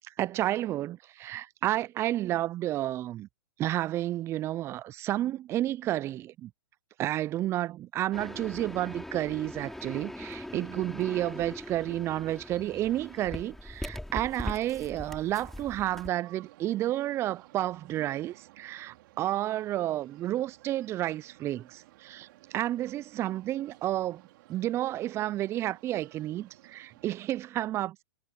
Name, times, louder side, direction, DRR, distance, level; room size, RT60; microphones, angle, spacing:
voice 1, 0.2-3.3 3.6-6.5 7.0-24.2 24.5-28.0, right 14 dB, 20° right, 0.3 m, -31 dB
sound 1, 8.1-16.1, left 1 dB, ahead, 2.7 m, -41 dB
sound 2, 15.0-27.2, right 18 dB, 50° right, 3.7 m, -56 dB
hypercardioid pair, 130°, 13 cm